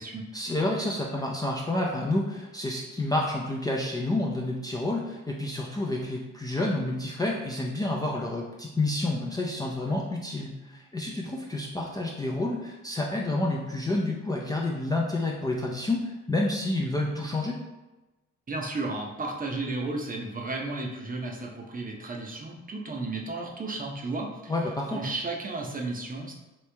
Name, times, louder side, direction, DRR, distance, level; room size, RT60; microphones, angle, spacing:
voice 1, 0.3-17.6 24.5-25.0, left 2 dB, 15° left, -3 dB, 0.4 m, -29 dB
voice 2, 18.5-24.5 24.9-26.3, right 2 dB, 30° right, 0 dB, 0.7 m, -33 dB
3.1 x 3.1 x 3.3 m, 1.1 s
cardioid pair, 90°, 30 cm